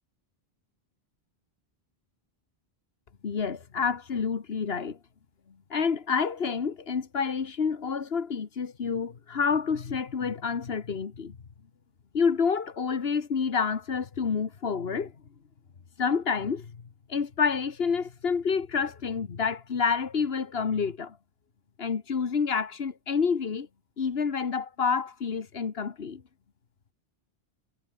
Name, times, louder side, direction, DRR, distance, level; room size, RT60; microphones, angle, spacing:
voice 1, 3.2-5.0 5.7-11.4 12.1-15.1 16.0-16.7 17.1-21.2 21.8-23.7 24.0-26.2, left 5 dB, 70° left, 1.6 m, -28 dB
omnidirectional pair, 1.1 m